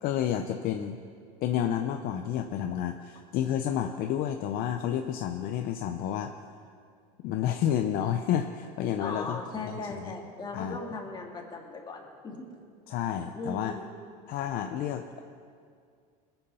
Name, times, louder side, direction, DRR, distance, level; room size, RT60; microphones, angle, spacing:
voice 1, 0.0-1.0 1.4-6.3 7.2-9.4 9.7-9.9 10.5-10.8 12.9-13.8 14.3-15.2, left 10 dB, 50° left, 5 dB, 0.7 m, -30 dB
voice 2, 9.0-12.5 13.3-13.9, left 3 dB, 25° left, 0 dB, 2.2 m, -38 dB
19.5 x 7.9 x 5.7 m, 2.2 s
supercardioid pair, 125°, 19 cm